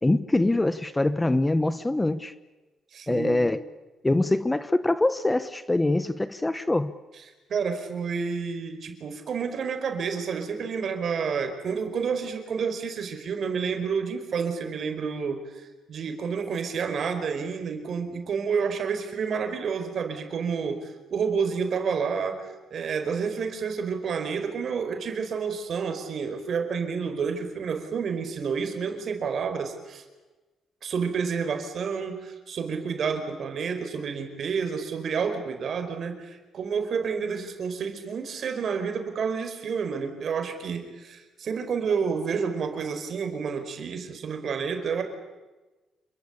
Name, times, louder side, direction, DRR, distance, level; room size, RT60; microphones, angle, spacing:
voice 1, 0.0-2.3 3.1-3.6 4.0-6.9, left 2 dB, 15° left, 14 dB, 1.1 m, -24 dB
voice 2, 2.9-3.5 7.5-30.0 30.8-45.0, right 6 dB, 55° right, 7 dB, 5.0 m, -29 dB
28.5 x 23.0 x 8.6 m, 1.2 s
cardioid pair, 90°, 0 cm